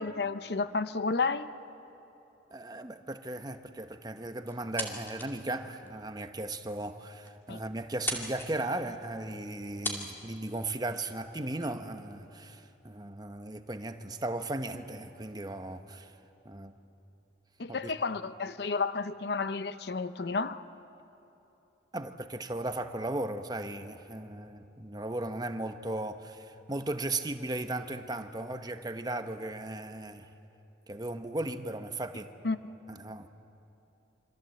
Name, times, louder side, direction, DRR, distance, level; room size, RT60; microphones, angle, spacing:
voice 1, 0.0-1.5 7.5-7.6 17.6-20.6 32.4-32.6, left 4 dB, 60° left, 0.7 m, -31 dB
voice 2, 2.5-16.1 16.4-16.7 17.7-17.9 21.9-30.3 30.9-32.3 32.9-33.3, right 2 dB, 20° right, 1.0 m, -36 dB
sound 1, 4.5-5.4 5.8-5.9 6.6-6.7 7.0-7.1 7.3-7.6 7.9-8.5 9.4-9.5 9.8-10.0, left 1 dB, 10° left, 2.3 m, -36 dB
27.5 x 25.5 x 7.8 m
head